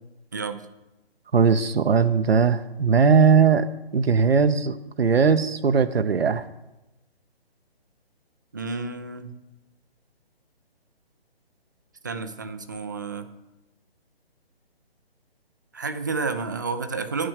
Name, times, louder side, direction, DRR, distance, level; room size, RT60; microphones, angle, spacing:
voice 1, 0.3-0.6 8.5-9.4 12.0-13.3 15.7-17.3, right 4 dB, 20° right, 9 dB, 0.4 m, -30 dB
voice 2, 1.3-6.4, right 6 dB, 75° right, 8 dB, 0.8 m, -19 dB
10.5 x 6.3 x 8.1 m, 0.97 s
figure-of-eight pair, 140°, 31 cm